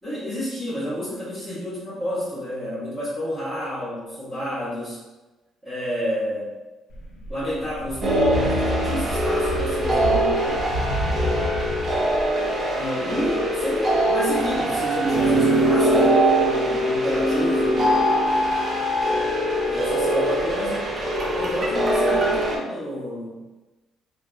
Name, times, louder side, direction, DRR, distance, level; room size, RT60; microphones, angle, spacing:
voice 1, 0.0-5.0 5.6-6.5 7.3-10.7 12.7-17.9 19.7-20.9 21.4-23.4, equal, 10° right, -13 dB, 0.8 m, -29 dB
sound 1, 6.9-12.3, left 1 dB, 50° left, 0.4 m, -30 dB
sound 2, 8.0-22.6, right 1 dB, 30° right, 0.4 m, -22 dB
2.7 x 2.2 x 2.4 m, 1.1 s
cardioid pair, 165°, 0 cm